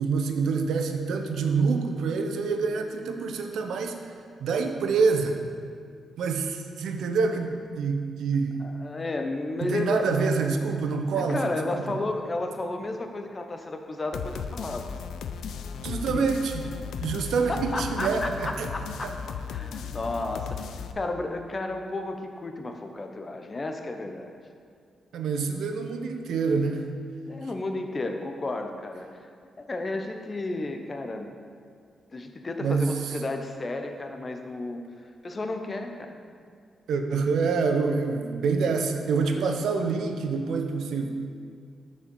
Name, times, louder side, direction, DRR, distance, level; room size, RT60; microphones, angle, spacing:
voice 1, 0.0-4.0 4.4-5.4 6.2-8.6 9.6-11.8 15.8-16.6 17.0-18.7 19.0-19.1 25.1-26.9 32.6-32.9 36.9-41.2, right 4 dB, 80° right, 5 dB, 0.6 m, -26 dB
voice 2, 8.6-10.1 11.1-14.9 16.1-16.3 17.5-19.1 19.5-20.7 20.9-24.4 27.3-29.3 29.6-31.3 32.1-36.2 39.2-39.5, left 2 dB, 35° left, 5 dB, 0.8 m, -33 dB
sound 1, 14.1-20.9, left 7 dB, 85° left, 0.3 m, -36 dB
6.7 x 5.3 x 5.4 m, 2.2 s
cardioid pair, 60°, 0 cm